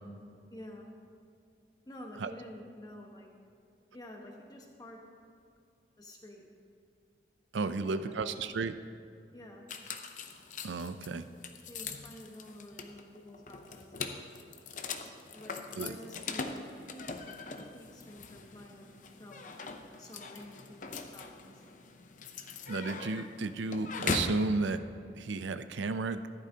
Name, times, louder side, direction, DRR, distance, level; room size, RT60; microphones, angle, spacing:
voice 1, 0.5-0.9 1.9-3.3 3.9-5.0 6.0-6.5 7.7-8.5 9.3-9.7 11.7-14.3 15.3-15.5 15.8-16.8 17.2-17.4 17.7-21.9, left 1 dB, 20° left, 0 dB, 1.2 m, -50 dB
voice 2, 7.5-8.8 10.6-11.3 15.8-16.0 22.7-24.8 25.2-26.2, right 3 dB, 90° right, 11 dB, 0.5 m, -33 dB
sound 1, 9.7-24.4, left 4 dB, 45° left, 0.6 m, -41 dB
14.0 x 11.5 x 2.9 m, 2.5 s
head